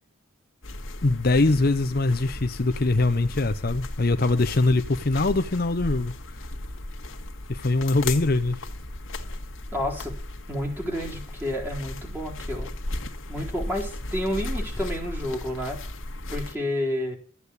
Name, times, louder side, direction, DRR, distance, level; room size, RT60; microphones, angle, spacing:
sound 1, 0.6-16.6, left 2 dB, 75° left, 1.8 m, -36 dB
voice 1, 1.0-6.1 7.5-8.6, left 2 dB, 45° left, 0.7 m, -22 dB
voice 2, 9.7-10.2 10.5-12.7 13.3-15.8 16.3-17.1, left 1 dB, 10° right, 3.8 m, -30 dB
14.0 x 8.3 x 8.3 m
head